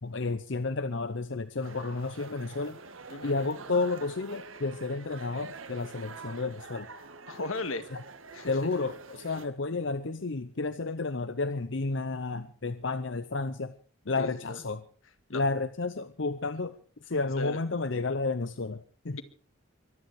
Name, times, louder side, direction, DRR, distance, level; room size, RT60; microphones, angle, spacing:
voice 1, 0.0-2.8 3.2-6.9 7.9-8.0 8.5-13.7 14.1-14.8 15.3-16.8 17.0-19.2, left 3 dB, 65° left, 12 dB, 0.8 m, -31 dB
sound 1, 1.6-9.5, right 4 dB, 80° right, 1.7 m, -46 dB
voice 2, 7.3-7.9 8.3-8.5 14.1-14.6 15.3-15.4 17.4-17.6, left 2 dB, 85° left, 9 dB, 1.9 m, -35 dB
23.5 x 11.0 x 4.9 m, 0.41 s
head